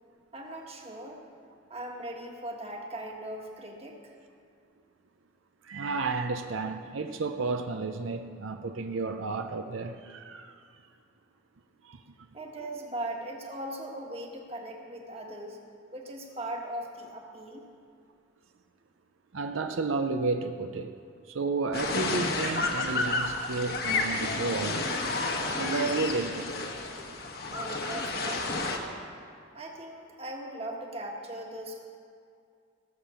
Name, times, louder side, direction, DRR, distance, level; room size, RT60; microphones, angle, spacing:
voice 1, 0.3-1.2 1.7-4.1 12.3-15.6 15.9-17.6 27.5-28.8 29.5-31.8, right 1 dB, 30° right, 1 dB, 1.6 m, -39 dB
voice 2, 5.6-10.6 11.8-12.0 19.3-20.9 21.3-24.9 25.5-26.6, right 3 dB, 80° right, 6 dB, 0.6 m, -32 dB
sound 1, 21.7-28.8, left 3 dB, 50° left, 1.3 m, -31 dB
18.0 x 7.5 x 7.0 m, 2.4 s
head